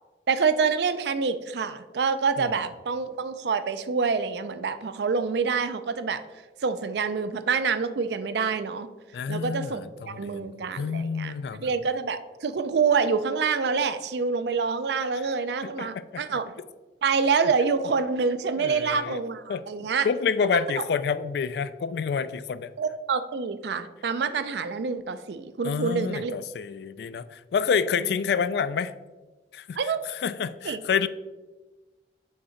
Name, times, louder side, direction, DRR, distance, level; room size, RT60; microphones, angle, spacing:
voice 1, 0.3-6.2 6.6-8.9 9.3-16.4 17.0-20.1 20.5-20.6 22.8-26.3 29.8-30.0 30.6-30.8, right 5 dB, 70° right, 11 dB, 0.4 m, -26 dB
voice 2, 9.1-11.7 15.8-15.9 16.1-16.2 18.6-19.2 19.5-19.6 20.0-22.7 25.6-28.9 29.5-29.8 30.2-31.1, left 6 dB, 65° left, 14 dB, 0.3 m, -28 dB
6.5 x 3.7 x 4.4 m, 1.2 s
head